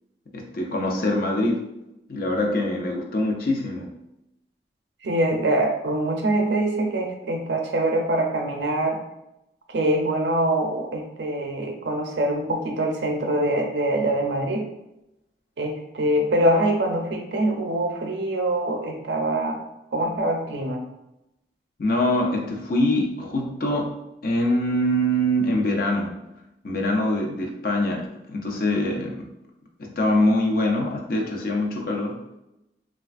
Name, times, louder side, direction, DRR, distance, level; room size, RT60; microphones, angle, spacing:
voice 1, 0.3-1.7 2.1-4.0 21.8-26.1 26.6-29.3 29.8-32.2, left 1 dB, 55° left, 1 dB, 0.5 m, -24 dB
voice 2, 5.0-9.0 9.7-14.7 15.6-19.6 19.9-20.8, right 1 dB, 80° right, 2 dB, 0.5 m, -24 dB
3.1 x 2.3 x 2.4 m, 0.88 s
head